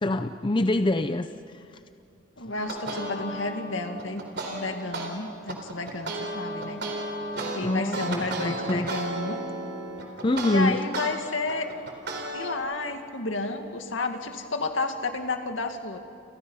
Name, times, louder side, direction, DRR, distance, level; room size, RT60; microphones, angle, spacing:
voice 1, 0.0-1.3 7.4-9.0 10.2-10.8, left 1 dB, 25° left, 9 dB, 0.6 m, -25 dB
voice 2, 2.4-4.2 4.5-6.8 7.5-9.4 10.4-11.7 12.3-16.0, left 3 dB, 80° left, 5 dB, 2.1 m, -31 dB
sound 1, 2.6-5.1 5.5-11.1 11.5-12.6, right 2 dB, 55° right, 4.1 m, -33 dB
29.5 x 29.0 x 5.6 m, 2.5 s
head